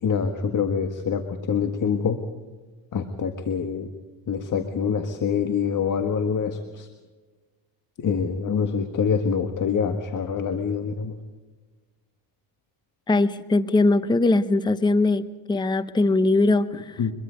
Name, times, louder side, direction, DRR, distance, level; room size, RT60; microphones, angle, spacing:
voice 1, 0.0-2.2 2.9-3.9 4.3-6.9 8.0-11.1 17.0-17.1, left 6 dB, 40° left, 7 dB, 1.7 m, -25 dB
voice 2, 13.1-17.0, left 2 dB, 10° left, 13 dB, 0.8 m, -21 dB
24.5 x 22.0 x 5.2 m, 1.3 s
cardioid pair, 105°, 45 cm